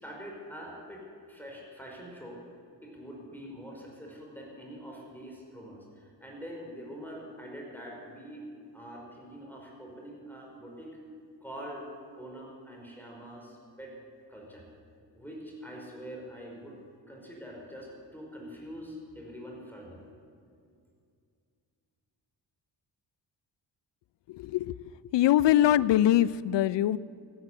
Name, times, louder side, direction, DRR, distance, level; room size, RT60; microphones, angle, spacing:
voice 1, 0.0-2.4 2.8-11.0 11.4-11.9 12.2-13.9 14.3-14.7 15.1-16.8 17.1-20.0, equal, 5° left, -2 dB, 5.1 m, -44 dB
voice 2, 24.3-27.0, left 12 dB, 60° left, 20 dB, 0.6 m, -23 dB
16.0 x 9.7 x 8.2 m, 2.3 s
hypercardioid pair, 45°, 49 cm